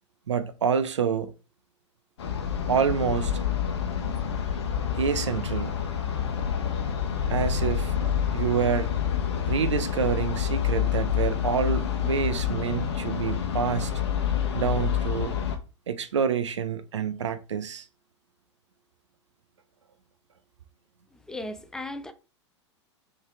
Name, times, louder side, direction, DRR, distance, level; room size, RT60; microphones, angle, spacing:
voice 1, 0.3-1.3 2.7-3.4 5.0-5.7 7.3-8.9 9.5-13.9 14.5-15.4 15.9-17.9, right 7 dB, 70° right, 0.5 m, -27 dB
sound 1, 2.2-15.6, left 9 dB, 65° left, 0.9 m, -28 dB
voice 2, 21.1-22.1, left 1 dB, 5° left, 0.4 m, -37 dB
3.9 x 3.2 x 3.5 m
figure-of-eight pair, 95°, 16 cm